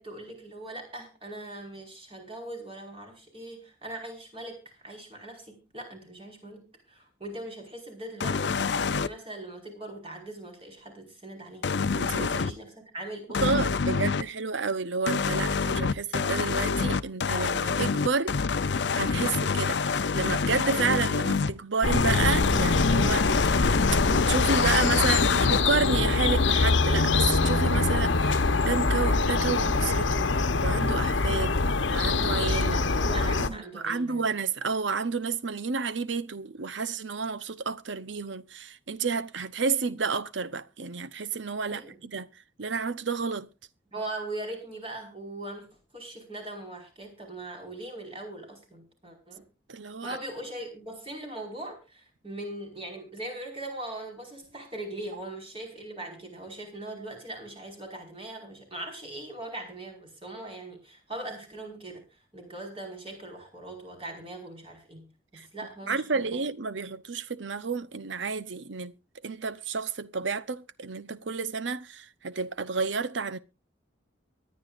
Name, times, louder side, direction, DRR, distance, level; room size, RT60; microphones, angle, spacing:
voice 1, 0.0-11.7 12.2-13.4 13.8-14.2 32.7-34.2 41.7-42.0 43.9-45.7 45.9-49.5 50.0-62.0 62.3-65.1 65.3-66.4, right 1 dB, 30° right, 5.1 m, -40 dB
sound 1, 8.2-9.1 11.6-12.5 13.3-14.2 15.1-21.5 21.9-25.6, left 5 dB, 65° left, 0.6 m, -26 dB
voice 2, 12.0-12.3 13.4-18.4 18.7-23.7 24.1-31.6 31.9-32.8 33.4-42.3 42.6-43.5 49.7-50.2 65.3-65.5 65.9-68.9 69.2-73.4, right 5 dB, 80° right, 0.9 m, -31 dB
sound 2, 21.8-33.5, left 3 dB, 85° left, 1.0 m, -24 dB
24.0 x 9.7 x 2.6 m
head